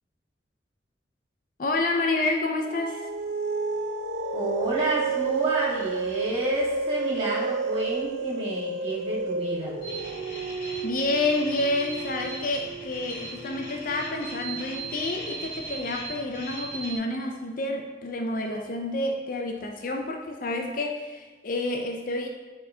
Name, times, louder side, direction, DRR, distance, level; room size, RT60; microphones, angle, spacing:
voice 1, 1.6-3.1 10.8-22.3, left 2 dB, 45° left, 3 dB, 0.5 m, -29 dB
sound 1, 2.7-15.5, right 5 dB, 60° right, 0.4 m, -32 dB
voice 2, 4.3-9.7, right 1 dB, 30° right, -8 dB, 1.8 m, -29 dB
sound 2, 9.8-17.0, right 2 dB, 75° left, 2.0 m, -39 dB
8.6 x 4.2 x 2.7 m, 1.3 s
head